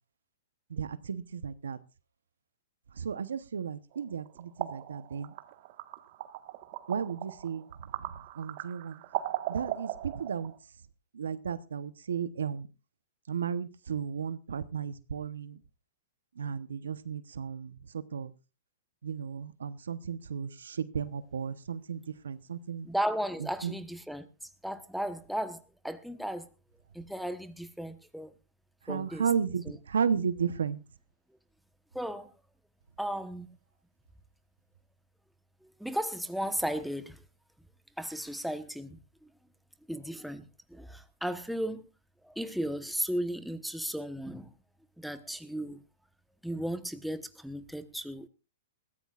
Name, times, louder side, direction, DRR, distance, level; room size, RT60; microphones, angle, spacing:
voice 1, 0.7-1.8 3.0-5.3 6.9-7.7 8.4-9.0 9.5-10.5 11.1-12.7 13.3-15.6 16.4-18.3 19.0-22.9 23.6-23.7 28.9-30.8, right 7 dB, 90° right, 15 dB, 0.9 m, -34 dB
sound 1, 3.9-10.6, right 14 dB, 50° right, 1.4 m, -39 dB
voice 2, 22.8-24.3 24.6-26.5 26.9-28.3 28.9-29.3 29.7-29.8 31.9-32.3 33.0-33.5 35.6-37.2 38.0-39.0 39.9-41.9 42.2-44.5 45.0-45.8 46.4-48.3, equal, ahead, 10 dB, 1.1 m, -35 dB
21.5 x 14.5 x 2.5 m, 0.30 s
hypercardioid pair, 135°, 0 cm